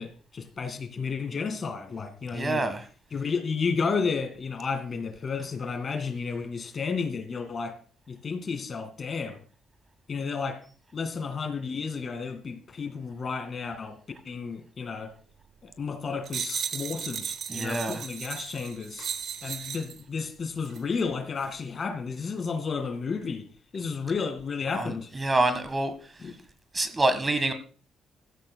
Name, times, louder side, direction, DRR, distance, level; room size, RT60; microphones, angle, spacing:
voice 1, 0.0-2.6 3.1-7.8 8.1-9.4 10.1-10.6 10.9-14.0 14.3-15.1 15.6-19.1 19.4-23.5 23.7-25.1 26.2-26.3, left 5 dB, 45° left, 2.2 m, -32 dB
voice 2, 2.3-2.9 17.5-18.1 24.7-25.9 26.7-27.5, right 2 dB, 25° right, 1.7 m, -26 dB
sound 1, 16.3-20.0 20.7-20.8, right 8 dB, 65° right, 1.0 m, -35 dB
16.5 x 13.0 x 2.3 m
cardioid pair, 90°, 0 cm